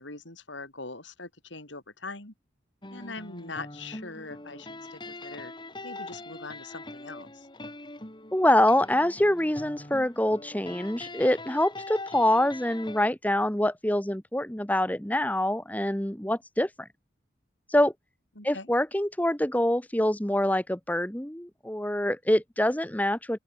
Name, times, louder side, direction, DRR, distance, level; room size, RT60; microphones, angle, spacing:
voice 1, 0.0-2.3 2.9-5.5 5.8-7.5 18.4-18.7, left 3 dB, 75° left, 7.3 m, -42 dB
sound 1, 2.8-13.1, left 2 dB, 25° left, 3.2 m, -43 dB
voice 2, 8.3-16.9 17.7-17.9 18.4-23.4, left 1 dB, 10° left, 1.3 m, -25 dB
open air
head